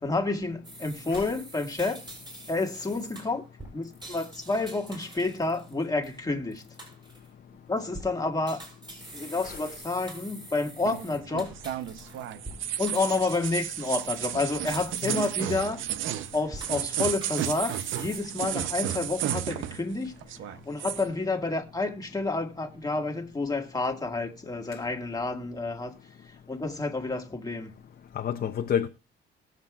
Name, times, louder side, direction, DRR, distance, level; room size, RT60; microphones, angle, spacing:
voice 1, 0.0-2.0 2.5-3.4 3.7-6.6 7.7-8.6 9.1-11.5 12.8-15.8 16.3-20.1 20.6-25.9 26.5-27.7, left 3 dB, 20° left, 1.7 m, -29 dB
sound 1, 0.6-6.2 6.5-7.3 7.8-8.1 8.5-12.6 12.9-14.2 14.7-15.9 16.2-18.2, right 1 dB, 25° right, 6.6 m, -45 dB
sound 2, 10.9-20.0 20.2-21.1, right 11 dB, 80° right, 0.6 m, -33 dB
voice 2, 28.1-28.9, left 8 dB, 50° left, 0.7 m, -29 dB
20.0 x 7.4 x 2.4 m
cardioid pair, 90°, 20 cm